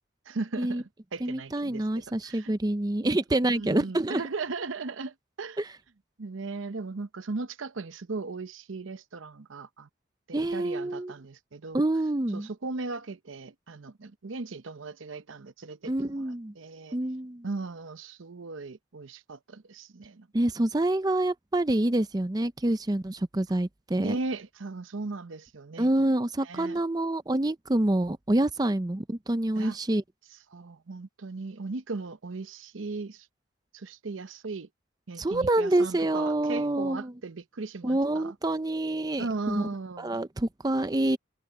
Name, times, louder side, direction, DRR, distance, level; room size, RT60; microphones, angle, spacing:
voice 1, 0.3-2.5 3.5-5.6 6.2-9.9 10.3-11.8 12.3-17.0 17.4-20.3 24.0-25.9 26.4-26.8 29.6-29.8 30.5-33.3 33.7-34.7 35.1-38.4 39.2-40.2, right 3 dB, 80° right, 0.8 m, -37 dB
voice 2, 1.2-4.2 5.6-5.7 10.3-11.1 11.7-12.5 15.9-16.5 16.9-17.5 20.3-24.2 25.8-30.0 35.2-37.1 37.8-39.7 40.0-41.2, right 1 dB, 20° right, 0.5 m, -27 dB
head